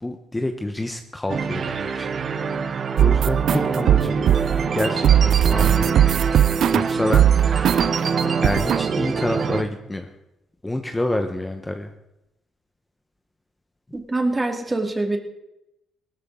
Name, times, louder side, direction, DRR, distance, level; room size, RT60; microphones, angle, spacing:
voice 1, 0.0-2.1 2.5-4.2 4.7-5.9 6.7-7.6 8.1-10.1 10.6-11.9, left 1 dB, 15° left, 5 dB, 1.1 m, -28 dB
sound 1, 1.3-9.6, right 5 dB, 50° right, 1.0 m, -25 dB
sound 2, 3.0-8.1 8.4-8.9, right 10 dB, 70° right, 0.5 m, -18 dB
voice 2, 13.9-15.2, right 2 dB, 20° right, 4 dB, 2.2 m, -24 dB
17.5 x 13.0 x 3.8 m, 0.89 s
cardioid pair, 90°, 0 cm